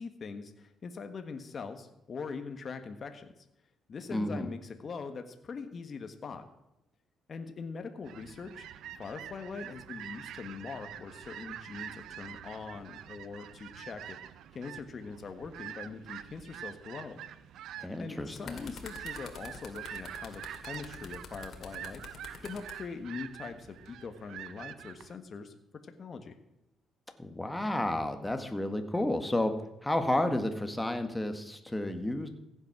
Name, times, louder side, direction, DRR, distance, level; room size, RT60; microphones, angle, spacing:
voice 1, 0.0-3.3 3.9-6.4 7.3-8.7 9.0-14.2 14.5-17.2 18.0-22.0 22.4-25.5 25.8-26.4, left 5 dB, 45° left, 7 dB, 1.4 m, -42 dB
voice 2, 4.1-4.5 17.8-18.7 27.2-29.5 29.8-32.3, left 1 dB, 10° left, 6 dB, 1.6 m, -31 dB
sound 1, 8.0-25.1, right 10 dB, 80° right, 0.6 m, -46 dB
sound 2, 18.1-22.8 23.6-23.9, left 6 dB, 65° left, 2.2 m, -47 dB
15.5 x 8.3 x 6.0 m, 0.87 s
cardioid pair, 90°, 0 cm